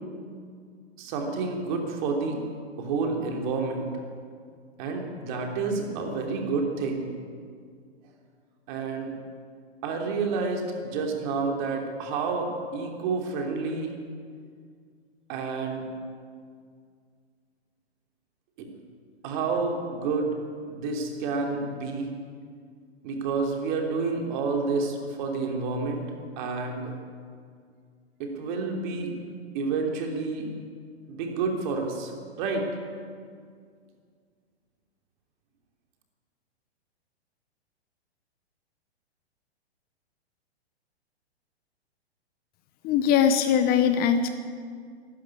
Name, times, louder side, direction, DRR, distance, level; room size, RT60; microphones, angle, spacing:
voice 1, 1.0-2.4 2.8-3.9 4.8-7.1 8.7-9.1 9.8-13.9 15.3-15.8 18.6-18.7 19.2-20.3 20.7-22.1 23.0-26.0 26.4-27.0 28.2-29.1 29.5-30.5 31.1-32.1 32.4-32.7, right 4 dB, 45° right, 2 dB, 3.1 m, -29 dB
voice 2, 42.8-44.3, left 8 dB, 30° left, 9 dB, 0.9 m, -21 dB
12.5 x 12.0 x 9.7 m, 2.1 s
hypercardioid pair, 120°, 33 cm